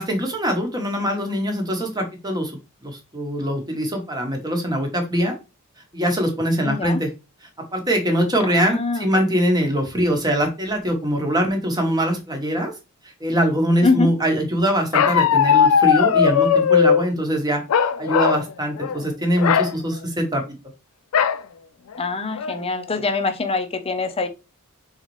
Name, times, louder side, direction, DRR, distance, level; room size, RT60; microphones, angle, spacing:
voice 1, 0.0-2.5 2.8-5.3 5.9-7.1 7.7-12.7 13.2-20.4, equal, 20° right, 1.2 m, -22 dB
voice 2, 6.6-7.0 8.4-9.1 13.8-14.1 22.0-24.3, left 3 dB, 25° left, 0.6 m, -24 dB
Bark, 14.9-17.0 17.7-18.4 18.8-19.0 19.4-19.7 21.1-21.4 22.0-22.1 22.4-22.8, left 7 dB, 65° left, 0.4 m, -18 dB
4.0 x 4.0 x 3.1 m
head